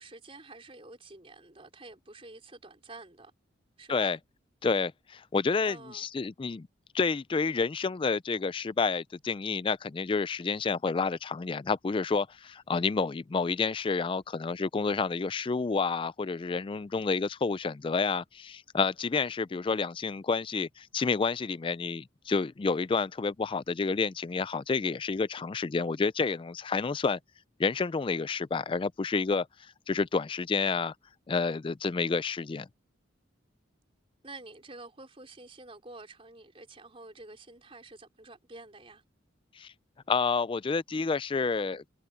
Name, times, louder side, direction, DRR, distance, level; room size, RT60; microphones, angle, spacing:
voice 1, 0.0-3.3 3.8-4.2 5.6-6.1 34.2-39.0, right 2 dB, 30° right, 4.3 m, -48 dB
voice 2, 4.6-6.7 6.9-27.2 27.6-29.5 29.9-30.9 31.3-32.7 39.6-39.7 40.1-41.9, left 4 dB, 25° left, 0.3 m, -29 dB
head